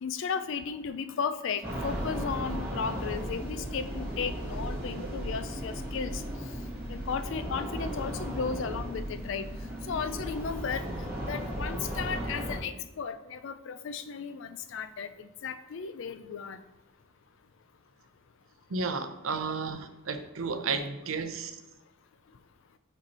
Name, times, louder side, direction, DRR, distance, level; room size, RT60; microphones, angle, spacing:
voice 1, 0.0-6.2 6.9-9.5 9.9-10.9 11.3-16.6, left 6 dB, 60° left, 11 dB, 0.4 m, -35 dB
sound 1, 1.6-12.6, equal, 10° right, 1.9 m, -36 dB
voice 2, 18.7-21.6, right 4 dB, 75° right, 9 dB, 0.6 m, -33 dB
5.2 x 4.5 x 4.2 m, 0.98 s
head